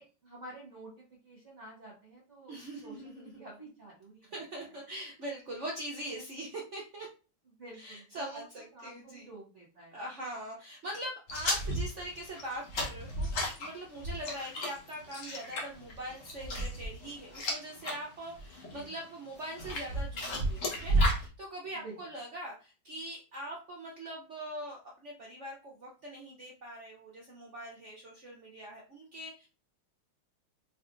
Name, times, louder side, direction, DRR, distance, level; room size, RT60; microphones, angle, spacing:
voice 1, 0.0-2.5 2.8-4.7 7.6-8.4 8.7-10.0 18.7-18.9 21.8-22.0, right 2 dB, 40° right, -4 dB, 1.2 m, -50 dB
voice 2, 2.5-3.4 4.3-7.1 7.8-9.3 9.9-29.5, right 1 dB, 70° right, -2 dB, 0.7 m, -42 dB
sound 1, 11.3-18.0 18.3-18.8 19.4-21.2, equal, 45° left, 1.2 m, -32 dB
4.5 x 3.3 x 2.5 m, 0.35 s
omnidirectional pair, 2.3 m